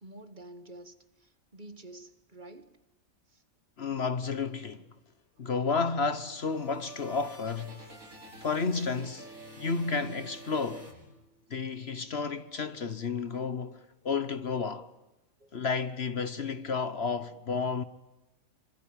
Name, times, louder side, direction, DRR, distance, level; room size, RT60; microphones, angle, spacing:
voice 1, 0.0-2.8 3.3-3.4 12.7-12.9 15.4-15.5, right 2 dB, 35° right, 1.8 m, -49 dB
voice 2, 3.8-4.8 5.4-7.8 8.4-9.3 9.6-10.9 11.5-14.9 15.5-17.8, left 5 dB, 50° left, 1.3 m, -31 dB
sound 1, 6.0-11.6, right 2 dB, 90° right, 7.4 m, -49 dB
26.0 x 24.5 x 8.9 m
omnidirectional pair, 1.4 m